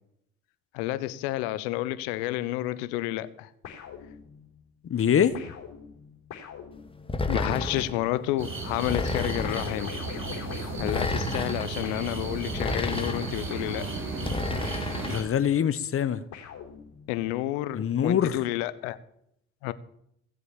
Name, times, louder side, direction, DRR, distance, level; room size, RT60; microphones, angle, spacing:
voice 1, 0.7-3.5 7.3-9.9 10.8-14.0 17.1-19.0 19.6-19.7, left 15 dB, 80° left, 0.9 m, -30 dB
sound 1, 3.6-4.6 5.3-8.5 9.4-11.6 11.8-15.6 16.3-17.3, left 7 dB, 60° left, 3.9 m, -44 dB
voice 2, 4.9-5.5 15.1-16.2 17.7-18.4, left 8 dB, 45° left, 1.1 m, -24 dB
sound 2, 7.1-8.0 8.9-9.8 10.8-11.7 12.5-13.4 14.2-15.2, left 2 dB, 15° left, 2.0 m, -31 dB
sound 3, 8.4-15.2, right 3 dB, 40° right, 5.8 m, -35 dB
17.0 x 7.9 x 7.2 m
hypercardioid pair, 60°, 32 cm